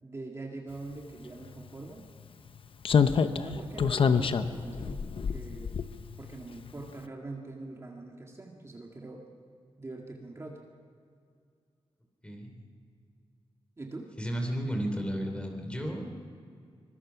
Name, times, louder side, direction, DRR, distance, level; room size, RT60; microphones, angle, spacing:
voice 1, 0.0-2.1 3.0-5.7 6.2-9.3 9.8-10.6 13.8-14.1, right 2 dB, 25° right, 0 dB, 2.0 m, -42 dB
Slam, 1.5-1.6 2.8-6.4 6.7-6.8, left 6 dB, 60° left, 0.8 m, -27 dB
voice 2, 12.2-12.6 14.2-16.0, equal, 10° left, 3 dB, 3.3 m, -33 dB
24.5 x 21.5 x 5.8 m, 2.3 s
wide cardioid pair, 115°, 10 cm